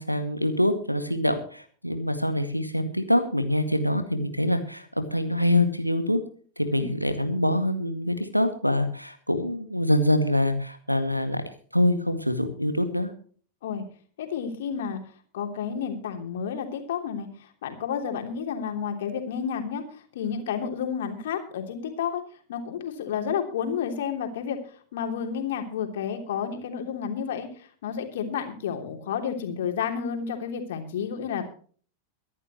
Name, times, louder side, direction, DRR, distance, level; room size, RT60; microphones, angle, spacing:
voice 1, 0.0-6.2 6.6-13.1, left 1 dB, 90° right, 10 dB, 2.0 m, -25 dB
voice 2, 14.2-15.0 15.3-22.2 22.5-24.6 24.9-31.5, left 7 dB, 60° left, 5 dB, 3.2 m, -31 dB
23.5 x 11.0 x 3.1 m, 0.43 s
figure-of-eight pair, 90°, 0 cm